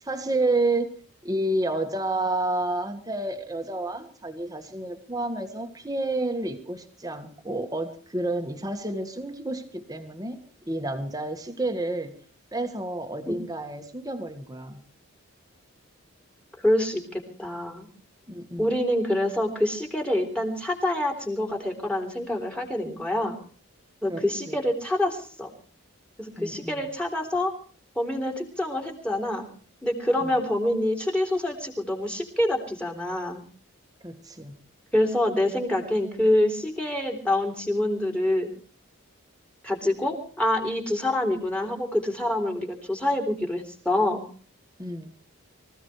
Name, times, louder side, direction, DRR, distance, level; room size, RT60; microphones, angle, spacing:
voice 1, 0.0-0.9 1.2-12.2 12.5-14.8 18.3-18.7 24.1-24.6 26.4-26.9 30.2-30.4 34.0-34.6 44.8-45.1, right 2 dB, 15° right, 7 dB, 1.8 m, -30 dB
voice 2, 16.6-17.9 18.6-23.4 24.0-25.5 26.2-27.5 27.9-29.5 29.8-33.4 34.9-38.5 39.6-44.2, left 1 dB, 5° left, 3 dB, 3.4 m, -26 dB
25.0 x 15.5 x 3.3 m, 0.42 s
head